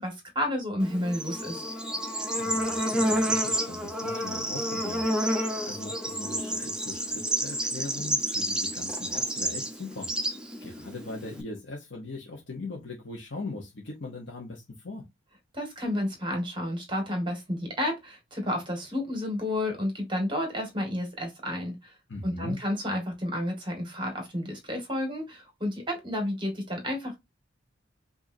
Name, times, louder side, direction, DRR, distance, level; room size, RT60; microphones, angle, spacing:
voice 1, 0.0-1.6 15.5-21.9 22.2-27.2, left 1 dB, 25° right, 1.9 m, -31 dB
Bird / Insect, 0.8-11.4, equal, 5° right, 0.8 m, -30 dB
voice 2, 2.4-15.1 22.1-22.6, left 2 dB, 65° left, 1.0 m, -40 dB
5.0 x 2.7 x 2.7 m
head